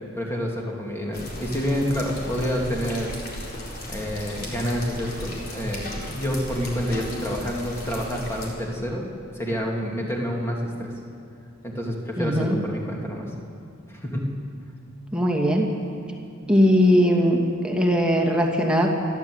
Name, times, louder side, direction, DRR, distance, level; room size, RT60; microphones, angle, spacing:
voice 1, 0.1-3.1 3.9-5.8 6.1-9.0 9.3-10.9 11.6-13.3 13.9-14.3, equal, 10° left, -2 dB, 2.9 m, -28 dB
sound 1, 1.1-8.5, left 1 dB, 50° left, 4.3 m, -36 dB
voice 2, 12.2-12.6 15.1-15.7 16.5-17.4 17.6-18.9, equal, 5° right, -1 dB, 2.4 m, -19 dB
29.0 x 12.0 x 8.2 m, 2.4 s
head